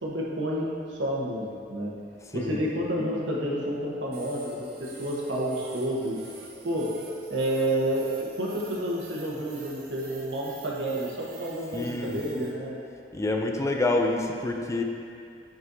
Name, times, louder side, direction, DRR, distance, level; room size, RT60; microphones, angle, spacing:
voice 1, 0.0-1.9 2.3-6.2 6.6-6.9 7.3-12.8, right 1 dB, 90° right, -4 dB, 1.2 m, -30 dB
voice 2, 2.3-2.6 11.7-12.2 13.1-14.8, left 2 dB, 15° left, 2 dB, 0.4 m, -27 dB
sound 1, 4.1-12.5, right 3 dB, 60° right, 0.9 m, -47 dB
7.9 x 5.3 x 2.7 m, 2.5 s
head